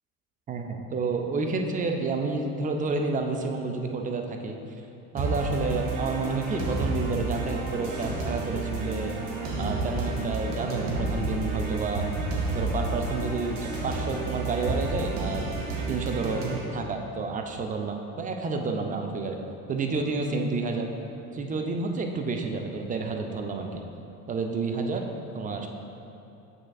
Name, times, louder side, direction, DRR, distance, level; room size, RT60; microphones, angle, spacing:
voice 1, 0.5-4.6 5.1-9.2 9.6-12.1 12.5-15.5 15.9-16.5 16.7-19.4 19.7-20.9 21.3-23.8 24.3-25.1 25.3-25.7, right 4 dB, 20° right, 3 dB, 0.4 m, -30 dB
sound 1, 5.2-16.6, right 2 dB, 60° right, 1.2 m, -30 dB
7.4 x 6.2 x 2.3 m, 2.8 s
figure-of-eight pair, 70°, 44 cm